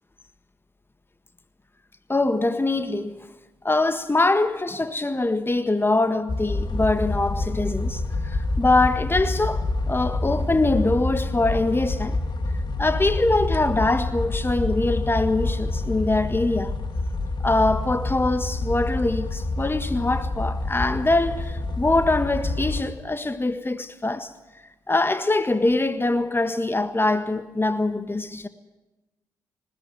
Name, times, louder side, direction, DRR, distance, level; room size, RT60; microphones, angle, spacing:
voice 1, 2.1-3.2 3.6-12.2 12.8-16.7 17.4-24.3 24.9-28.5, left 2 dB, 20° left, 1.6 m, -23 dB
sound 1, 6.3-22.8, left 2 dB, 45° left, 2.6 m, -27 dB
20.0 x 17.5 x 9.2 m
hypercardioid pair, 40°, 10 cm